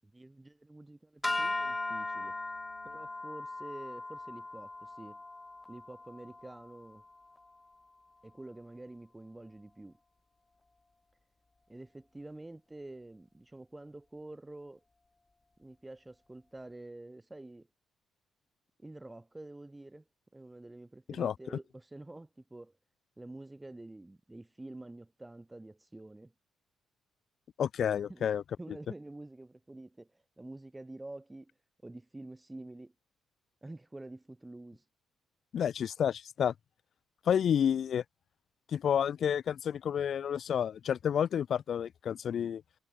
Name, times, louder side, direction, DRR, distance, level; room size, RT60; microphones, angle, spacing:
voice 1, 0.0-2.3 2.8-5.2 5.7-7.0 8.2-10.0 11.7-14.8 15.6-17.7 18.8-20.0 20.3-22.8 23.2-26.3 28.1-28.3 28.6-31.5 31.8-32.9 33.6-34.8, right 2 dB, 15° right, 6.3 m, -48 dB
sound 1, 1.2-7.6, left 2 dB, 20° left, 4.1 m, -38 dB
voice 2, 27.6-28.4 35.5-36.5 37.3-38.0 38.7-42.6, left 8 dB, 60° left, 2.5 m, -30 dB
cardioid pair, 90°, 0 cm